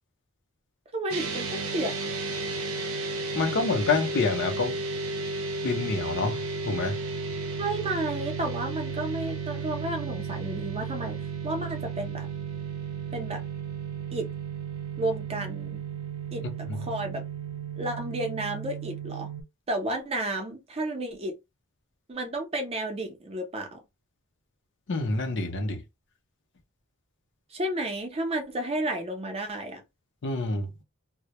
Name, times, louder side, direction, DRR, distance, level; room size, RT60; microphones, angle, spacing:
voice 1, 0.9-1.9 7.6-11.2 11.4-12.3 13.1-13.4 14.1-14.3 15.0-15.8 16.3-17.2 17.8-19.3 19.7-21.4 22.1-23.8 27.5-29.8, right 1 dB, 30° right, 0.6 m, -32 dB
sound 1, 1.1-19.4, right 4 dB, 70° right, 0.6 m, -34 dB
voice 2, 3.4-4.8 5.6-7.0 16.4-16.5 24.9-25.8 30.2-30.7, left 3 dB, 55° left, 0.6 m, -27 dB
2.1 x 2.1 x 2.8 m
head